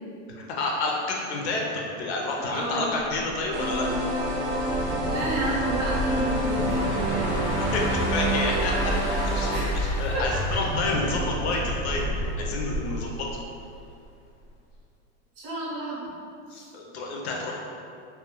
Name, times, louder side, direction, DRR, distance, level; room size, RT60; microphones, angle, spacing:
voice 1, 0.3-4.2 7.7-8.9 9.2-12.1 12.4-13.3 16.5-17.6, left 2 dB, 65° left, -1 dB, 0.5 m, -29 dB
voice 2, 2.5-3.0 4.7-7.4 9.5-9.7 10.3-10.7 15.4-16.1 16.5-16.7, right 1 dB, 35° right, -6 dB, 0.5 m, -33 dB
sound 1, 3.0-14.1 14.4-14.7, equal, 90° left, 0.9 m, -34 dB
sound 2, 3.5-9.6, right 1 dB, 80° right, 0.6 m, -28 dB
sound 3, 4.6-12.3, equal, 15° left, 0.4 m, -31 dB
2.3 x 2.2 x 2.8 m, 2.4 s
supercardioid pair, 165°, 35 cm